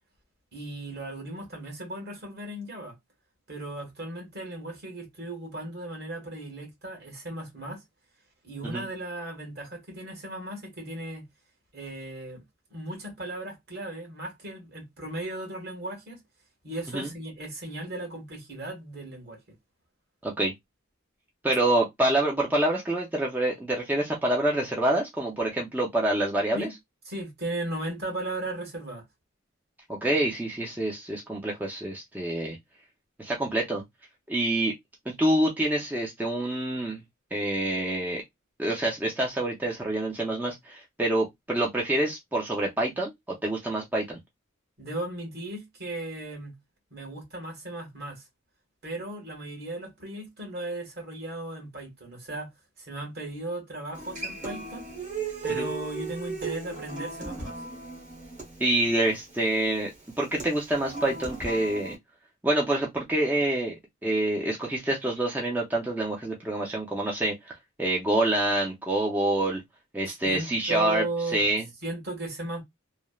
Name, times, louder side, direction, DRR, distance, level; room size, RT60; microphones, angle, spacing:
voice 1, 0.5-2.9 3.5-7.8 8.4-11.3 11.7-12.4 12.7-16.2 16.6-19.4 26.5-26.7 27.0-29.0 44.8-46.6 46.9-48.2 48.8-52.5 52.8-54.8 55.4-57.6 70.1-71.5 71.8-72.6, right 2 dB, 50° right, 1.3 m, -36 dB
voice 2, 21.4-26.7 29.9-32.6 33.2-33.8 34.3-34.7 35.1-37.0 37.3-38.2 38.6-44.2 55.5-55.7 58.6-59.9 60.2-61.9 62.4-63.8 64.0-67.3 67.8-69.6 69.9-71.0 71.3-71.6, right 1 dB, 10° right, 0.5 m, -26 dB
Human voice / Acoustic guitar, 53.9-62.0, right 4 dB, 35° right, 1.0 m, -36 dB
3.0 x 2.1 x 2.3 m
head